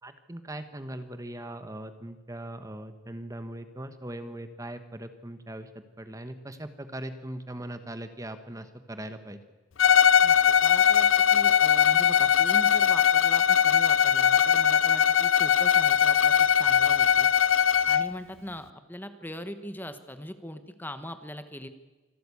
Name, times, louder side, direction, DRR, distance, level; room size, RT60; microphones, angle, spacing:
voice 1, 0.0-5.7 6.0-9.4, right 1 dB, 15° right, 10 dB, 1.1 m, -40 dB
Bowed string instrument, 9.8-18.1, left 8 dB, 75° left, 0.6 m, -20 dB
voice 2, 10.2-17.3 17.9-21.7, left 1 dB, 10° left, 10 dB, 1.2 m, -40 dB
25.5 x 13.0 x 8.5 m, 1.2 s
head